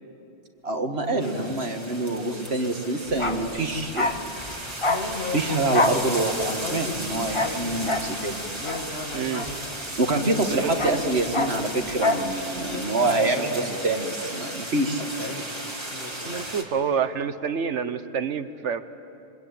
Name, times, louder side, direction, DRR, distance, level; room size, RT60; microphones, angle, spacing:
voice 1, 0.6-4.2 5.3-8.4 10.0-15.0, right 2 dB, 65° right, 4 dB, 2.0 m, -26 dB
sound 1, 1.0-1.6 2.1-3.7 4.9-6.1 6.5-8.1 8.6-9.8 10.3-11.0 11.3-12.0 12.6-14.0 15.0-15.5 15.8-16.5, left 2 dB, 60° left, 2.6 m, -37 dB
sound 2, 1.2-16.6, right 1 dB, 25° right, 2.4 m, -36 dB
Bark, 3.1-10.1 10.4-12.3 12.6-12.7, left 2 dB, 25° left, 1.2 m, -28 dB
voice 2, 9.1-9.5 10.5-11.0 16.3-18.8, right 7 dB, 80° right, 12 dB, 1.4 m, -28 dB
26.0 x 24.5 x 8.8 m, 2.8 s
omnidirectional pair, 1.2 m